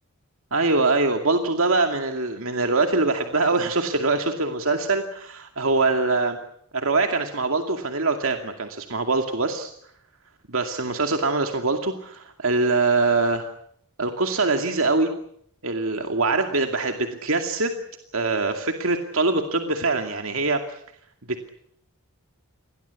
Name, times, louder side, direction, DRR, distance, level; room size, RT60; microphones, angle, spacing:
voice 1, 0.5-6.4 6.7-9.7 10.5-13.5 14.0-15.1 15.6-17.8 18.1-20.8, right 3 dB, 65° right, 5 dB, 2.4 m, -23 dB
29.5 x 22.5 x 8.4 m, 0.72 s
head